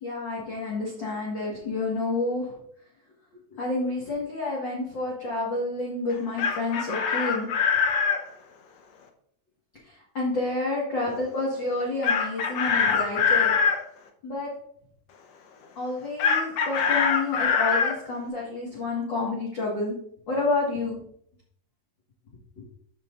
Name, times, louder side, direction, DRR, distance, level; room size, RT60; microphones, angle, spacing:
voice 1, 0.0-2.6 3.5-7.5 9.8-13.5 14.2-14.5 15.8-20.0 20.3-21.0 22.6-22.7, left 2 dB, 45° left, -5 dB, 1.9 m, -29 dB
Chicken rooster, 6.1-8.2 12.0-13.8 16.2-18.0, left 6 dB, 65° left, 2.0 m, -23 dB
13.5 x 5.8 x 2.6 m, 0.66 s
omnidirectional pair, 3.7 m